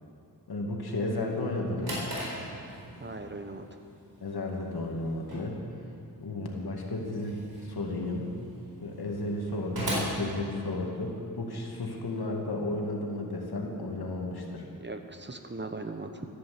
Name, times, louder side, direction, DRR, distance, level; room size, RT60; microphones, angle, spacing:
voice 1, 0.5-2.0 4.2-5.6 6.2-8.3 8.8-14.7, left 2 dB, 80° left, 0 dB, 2.1 m, -33 dB
Drawer open or close, 1.7-11.2, right 1 dB, 75° right, 4.5 m, -39 dB
voice 2, 3.0-3.7 14.8-16.3, right 2 dB, 30° right, 6 dB, 1.1 m, -39 dB
13.5 x 10.5 x 7.7 m, 2.5 s
wide cardioid pair, 75°, 37 cm